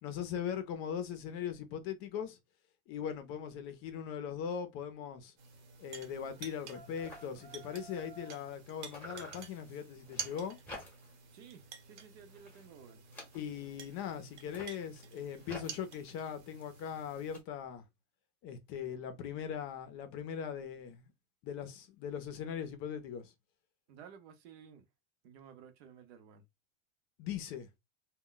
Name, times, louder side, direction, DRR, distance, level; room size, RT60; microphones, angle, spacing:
voice 1, 0.0-2.4 2.9-5.3 5.8-10.6 13.3-17.8 18.4-21.1 21.4-23.3 27.2-27.7, left 8 dB, 40° left, 0.6 m, -40 dB
sound 1, 5.4-17.4, right 6 dB, 80° right, 1.1 m, -50 dB
sound 2, 5.8-6.0 6.3-6.4 6.6-8.6 8.9-11.3 11.6-12.0 12.3-13.8 14.3-17.4, left 1 dB, 5° left, 0.9 m, -52 dB
sound 3, 6.3-8.5, right 3 dB, 20° right, 0.4 m, -55 dB
voice 2, 11.3-13.0 23.9-24.9 25.2-26.4, right 7 dB, 60° right, 0.8 m, -55 dB
2.2 x 2.1 x 3.8 m
supercardioid pair, 155°, 34 cm